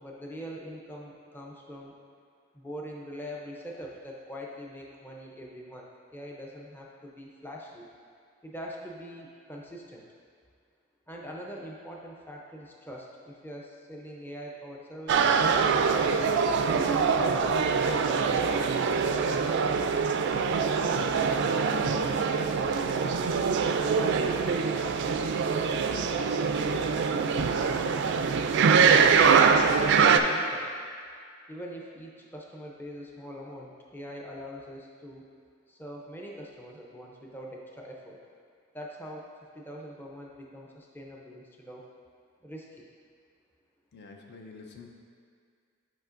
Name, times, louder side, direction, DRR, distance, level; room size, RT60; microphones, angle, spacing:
voice 1, 0.0-1.9 2.5-5.9 6.1-7.9 8.4-10.0 11.1-15.9 20.6-23.4 23.9-26.8 27.4-27.9 29.7-30.7 31.5-35.2 35.7-38.2 38.7-39.3 39.5-41.8 42.4-42.9, equal, 10° left, -2 dB, 0.5 m, -43 dB
sound 1, 15.1-30.2, right 5 dB, 60° right, 0.3 m, -24 dB
voice 2, 43.9-44.9, left 4 dB, 55° left, 2 dB, 0.6 m, -47 dB
9.2 x 5.0 x 2.5 m, 2.2 s
head